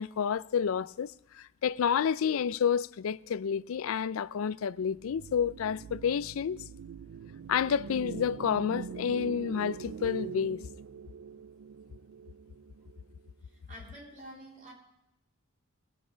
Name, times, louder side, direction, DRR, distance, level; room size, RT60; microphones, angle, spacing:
voice 1, 0.0-6.6 7.5-10.6, left 7 dB, 70° left, 0.4 m, -30 dB
sound 1, 4.9-13.3, right 6 dB, 80° right, 0.4 m, -43 dB
voice 2, 13.4-14.7, right 1 dB, 40° right, 3.8 m, -48 dB
19.5 x 8.6 x 5.1 m
head